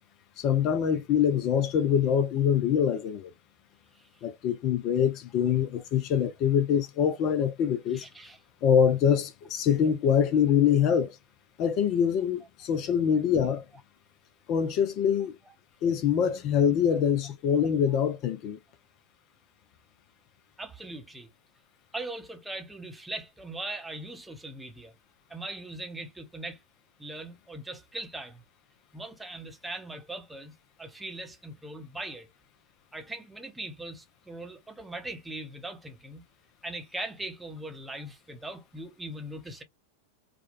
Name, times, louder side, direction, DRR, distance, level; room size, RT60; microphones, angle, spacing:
voice 1, 0.4-3.3 4.2-8.1 8.6-11.2 11.6-13.7 14.5-15.4 15.8-18.6, left 8 dB, 40° left, 0.5 m, -24 dB
voice 2, 7.9-8.4 12.9-13.0 15.5-15.6 16.3-16.4 20.6-21.3 21.9-24.9 25.3-26.6 27.0-28.4 28.9-32.3 32.9-36.2 36.6-39.6, right 2 dB, 5° right, 0.8 m, -40 dB
3.5 x 2.2 x 2.4 m
figure-of-eight pair, 90°, 0 cm